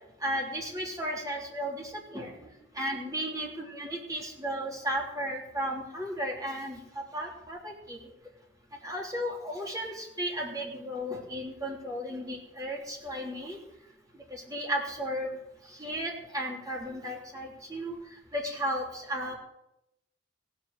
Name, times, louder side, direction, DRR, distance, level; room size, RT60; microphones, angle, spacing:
voice 1, 0.2-2.3 2.7-8.0 8.8-13.6 14.3-15.4 15.7-18.0 18.3-19.4, equal, 20° right, -1 dB, 3.2 m, -34 dB
16.5 x 7.7 x 7.9 m, 0.87 s
head